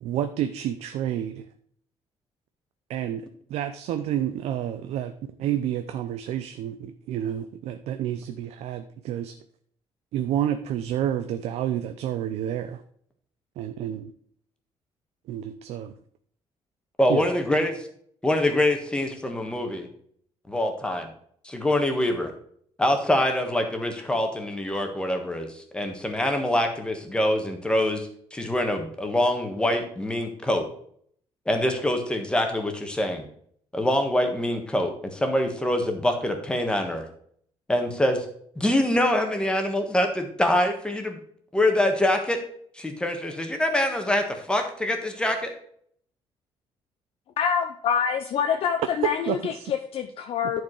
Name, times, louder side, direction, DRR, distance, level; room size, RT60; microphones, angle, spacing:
voice 1, 0.0-1.5 2.9-5.1 5.4-9.4 10.1-12.8 13.6-14.1 15.3-15.9 17.1-17.3 49.0-49.7, right 10 dB, 90° right, 9 dB, 0.6 m, -29 dB
voice 2, 17.0-17.8 18.2-19.9 20.5-21.1 21.4-22.3 22.8-30.7 31.5-33.3 33.7-37.0 37.7-38.2 38.5-41.2 41.5-42.4 42.7-45.5, left 1 dB, 10° left, 4 dB, 1.4 m, -25 dB
voice 3, 47.4-50.6, left 7 dB, 60° left, 5 dB, 0.7 m, -26 dB
10.5 x 4.7 x 4.7 m, 0.63 s
cardioid pair, 135°, 11 cm